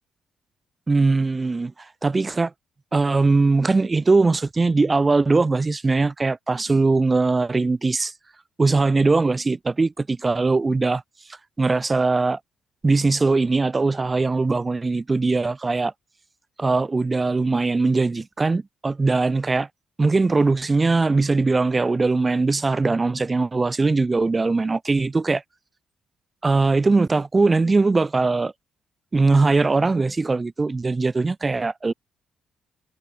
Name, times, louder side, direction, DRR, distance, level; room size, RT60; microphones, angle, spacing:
voice 1, 0.9-1.7 2.0-2.5 2.9-8.1 8.6-11.0 11.6-12.4 12.8-15.9 16.6-19.7 20.0-25.4 26.4-28.5 29.1-31.9, right 3 dB, 25° right, 0.8 m, -20 dB
cardioid pair, 90°, 0 cm